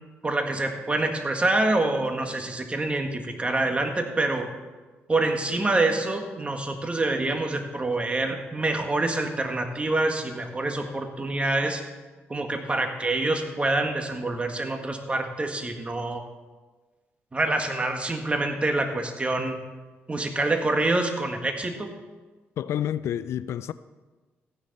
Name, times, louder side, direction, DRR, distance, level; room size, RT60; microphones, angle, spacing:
voice 1, 0.2-4.5 5.1-11.8 12.3-16.2 17.3-19.6 20.1-21.9, right 2 dB, 25° right, 1.7 m, -26 dB
voice 2, 22.6-23.7, left 10 dB, 75° left, 0.4 m, -29 dB
14.5 x 10.0 x 4.2 m
cardioid pair, 75°, 5 cm